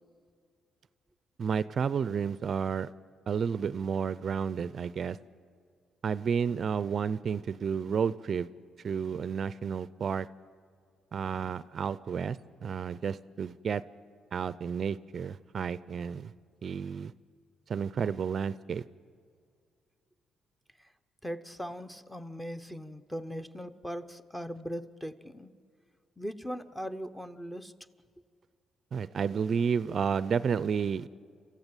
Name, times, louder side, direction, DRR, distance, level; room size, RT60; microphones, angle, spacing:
voice 1, 1.4-2.9 3.3-5.2 6.0-8.5 8.8-10.3 11.1-13.8 14.3-16.3 16.6-17.1 17.7-18.8 28.9-31.1, right 6 dB, 50° right, 17 dB, 0.5 m, -31 dB
voice 2, 21.2-25.5 26.2-27.7, equal, 5° left, 11 dB, 0.9 m, -39 dB
27.5 x 14.5 x 9.0 m, 2.2 s
cardioid pair, 90°, 0 cm